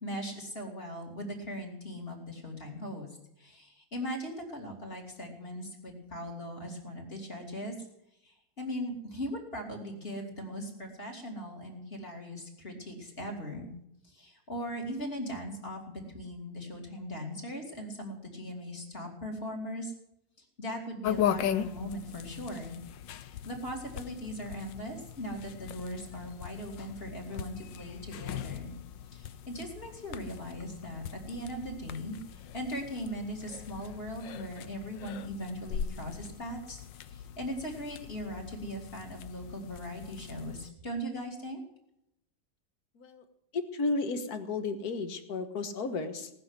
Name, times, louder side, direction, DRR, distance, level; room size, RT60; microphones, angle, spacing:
voice 1, 0.0-3.1 3.4-7.9 8.2-13.7 14.1-19.9 20.6-22.8 23.2-28.7 29.1-41.6, equal, 30° left, 1 dB, 3.1 m, -39 dB
sound 1, 21.0-40.7, left 10 dB, 80° left, 1.4 m, -39 dB
voice 2, 43.5-46.3, left 3 dB, 55° left, 9 dB, 1.8 m, -33 dB
18.5 x 6.8 x 9.7 m, 0.81 s
omnidirectional pair, 2.0 m